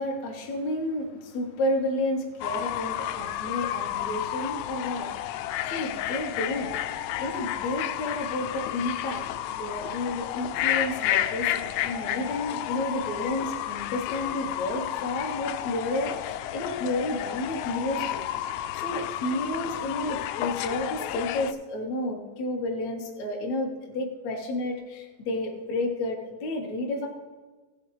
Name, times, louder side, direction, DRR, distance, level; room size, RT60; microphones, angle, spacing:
voice 1, 0.0-18.2 18.7-27.1, left 1 dB, 65° left, 0 dB, 1.8 m, -31 dB
Fowl / Bird, 2.4-21.5, left 13 dB, 85° left, 2.9 m, -31 dB
17.0 x 7.3 x 3.2 m, 1.3 s
omnidirectional pair, 5.3 m